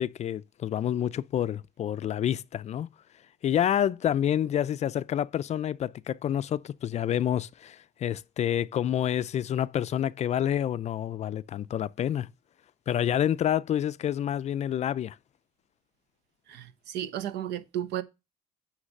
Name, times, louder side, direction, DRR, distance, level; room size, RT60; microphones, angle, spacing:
voice 1, 0.0-2.9 3.4-12.3 12.9-15.2, left 10 dB, 40° left, 0.4 m, -28 dB
voice 2, 16.5-18.0, right 11 dB, 85° right, 1.0 m, -33 dB
9.6 x 3.3 x 6.4 m
cardioid pair, 110°, 17 cm